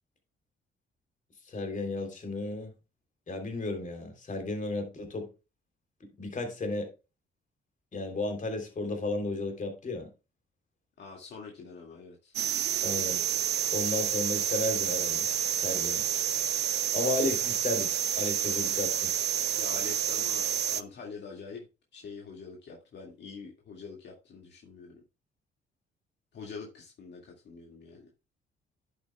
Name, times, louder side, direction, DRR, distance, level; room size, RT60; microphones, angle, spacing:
voice 1, 1.5-2.7 3.3-5.3 6.2-6.9 7.9-10.1 12.8-13.2 13.7-15.3 15.6-16.0 16.9-17.9 18.2-19.1, left 2 dB, 40° left, 3.3 m, -33 dB
voice 2, 11.0-12.3 19.5-21.7 21.9-25.0 26.3-28.1, left 5 dB, 60° left, 2.1 m, -45 dB
sound 1, 12.3-20.8, right 10 dB, 60° right, 0.5 m, -29 dB
10.5 x 8.2 x 2.3 m
cardioid pair, 90°, 20 cm